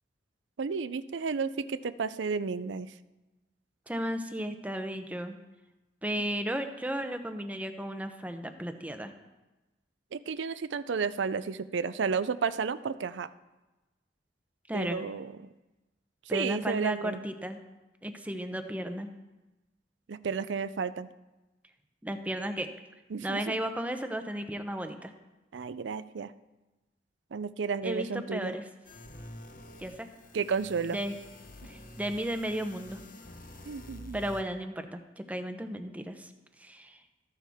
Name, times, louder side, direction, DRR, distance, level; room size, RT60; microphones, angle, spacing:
voice 1, 0.6-2.9 10.1-13.3 14.7-15.5 16.3-17.2 20.1-21.1 23.1-23.6 25.5-26.3 27.3-28.6 30.3-31.0 33.7-34.2, right 5 dB, 90° right, 14 dB, 0.5 m, -32 dB
voice 2, 3.9-5.4 6.0-9.1 14.7-15.0 16.3-17.6 18.0-19.1 22.0-22.7 23.2-25.1 27.8-28.6 29.8-30.1 30.9-31.1 31.6-33.0 34.1-36.3 36.6-37.0, right 1 dB, 10° right, 7 dB, 0.8 m, -34 dB
sound 1, 28.8-34.4, left 1 dB, 50° left, 1.1 m, -48 dB
14.0 x 10.0 x 3.6 m, 1.1 s
head